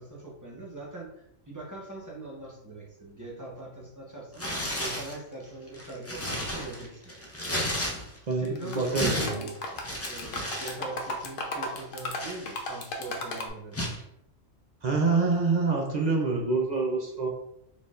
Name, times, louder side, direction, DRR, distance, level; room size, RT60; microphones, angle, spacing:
voice 1, 0.0-4.5 4.8-7.2 8.4-9.5 10.0-14.0, right 2 dB, 15° right, -4 dB, 0.8 m, -42 dB
Tearing, 4.3-5.2 5.7-8.3 8.6-10.8 11.0-11.3 11.8-12.9 13.7-14.0, equal, 20° left, 0.4 m, -33 dB
voice 2, 8.3-9.5 14.8-17.3, right 3 dB, 50° right, -1 dB, 0.6 m, -26 dB
sound 1, 8.4-9.0 9.3-13.5, left 2 dB, 55° left, 0.7 m, -35 dB
4.3 x 3.5 x 2.4 m, 0.77 s
omnidirectional pair, 1.3 m